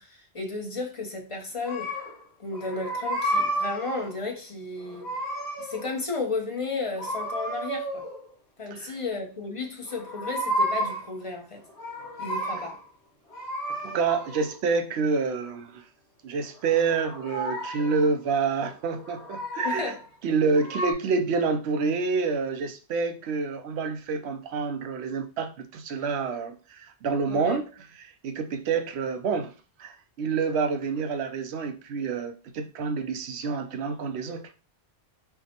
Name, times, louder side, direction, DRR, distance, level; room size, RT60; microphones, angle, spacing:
voice 1, 0.0-1.9 2.4-5.1 5.6-8.0 8.6-11.6 12.2-12.8 19.6-20.0 27.3-27.6, left 3 dB, 35° left, 0.7 m, -33 dB
sound 1, 1.6-2.2 2.5-4.2 4.8-6.0 6.9-8.3 9.8-11.1 11.6-12.8 13.3-14.6 16.4-18.1 18.9-20.0 20.6-20.9, right 1 dB, 75° left, 1.3 m, -32 dB
voice 2, 13.8-15.8 16.2-19.9 20.2-27.6 28.2-29.5 29.8-34.5, right 4 dB, 75° right, 0.8 m, -28 dB
5.6 x 2.1 x 2.8 m
omnidirectional pair, 1.1 m